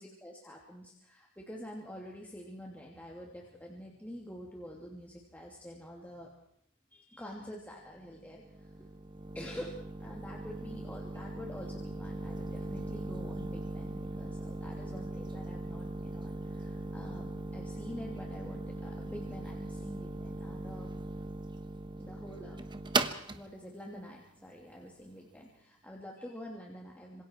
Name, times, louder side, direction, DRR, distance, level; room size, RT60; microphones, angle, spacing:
voice 1, 0.0-6.3 6.9-8.9 9.3-20.9 22.0-22.6 23.3-27.2, equal, 5° left, -2 dB, 2.9 m, -47 dB
sound 1, 7.9-25.5, right 2 dB, 20° right, 1.1 m, -39 dB
26.5 x 26.0 x 4.7 m, 0.70 s
head